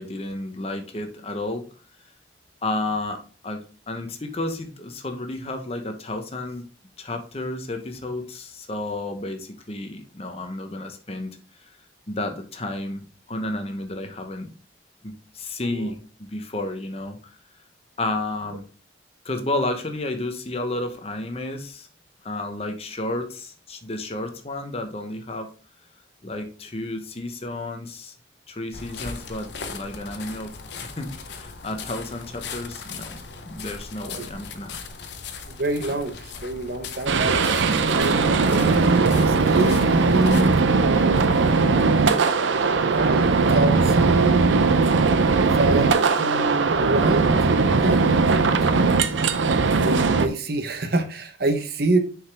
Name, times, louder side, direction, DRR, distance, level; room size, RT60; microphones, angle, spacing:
voice 1, 0.0-1.7 2.6-6.7 7.0-11.7 12.1-13.0 13.3-14.5 15.0-17.3 18.0-18.6 19.2-21.9 22.2-25.5 26.2-28.1 28.5-30.5 31.0-34.8, left 2 dB, 35° left, 6 dB, 0.9 m, -31 dB
sound 1, 28.7-40.6, left 5 dB, 65° left, 0.7 m, -38 dB
voice 2, 35.5-37.4 37.9-41.8 42.6-44.8 45.5-47.4 47.8-48.9 49.7-52.0, right 2 dB, 55° right, 8 dB, 0.8 m, -26 dB
sound 2, 37.1-50.3, right 4 dB, 85° right, 0.6 m, -19 dB
6.4 x 4.9 x 3.3 m, 0.38 s
head